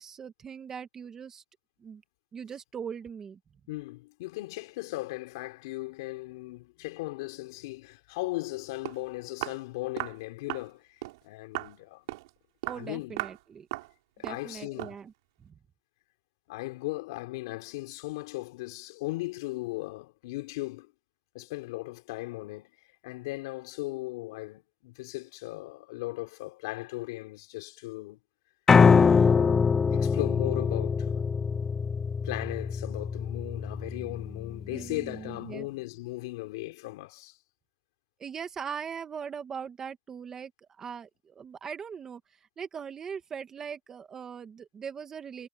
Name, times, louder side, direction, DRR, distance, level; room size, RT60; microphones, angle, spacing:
voice 1, 0.0-1.4 1.8-2.0 2.3-3.4 12.7-13.7 14.2-15.1 15.4-15.5 34.7-35.7 38.2-40.5 40.8-45.5, right 7 dB, 20° right, 1.7 m, -40 dB
voice 2, 3.7-12.0 12.8-13.2 14.2-15.0 16.5-20.9 21.3-22.7 23.0-28.2 29.3-31.4 32.2-37.4, left 21 dB, 65° left, 5.1 m, -37 dB
Walk footsteps, 8.5-8.6 8.9-9.0 9.4-9.6 10.0-10.2 10.5-10.7 11.0-11.2 11.6-11.8 12.1-12.3 12.6-12.9 13.2-13.4 13.7-13.9 14.2-14.5 14.8-15.0, right 20 dB, 70° right, 4.5 m, -36 dB
Piano, 28.7-34.8, left 5 dB, 15° left, 0.6 m, -23 dB
supercardioid pair, 155°, 3 cm